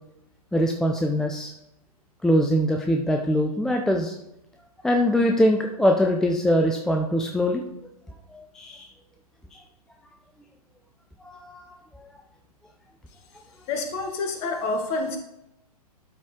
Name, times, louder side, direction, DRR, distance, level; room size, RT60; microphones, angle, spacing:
voice 1, 0.5-1.5 2.2-4.2 4.8-7.6 8.3-8.9 11.2-12.0, equal, 5° left, 2 dB, 0.4 m, -23 dB
voice 2, 13.7-15.2, left 3 dB, 30° left, 4 dB, 1.5 m, -28 dB
12.0 x 4.1 x 3.6 m, 0.83 s
figure-of-eight pair, 115°, 20 cm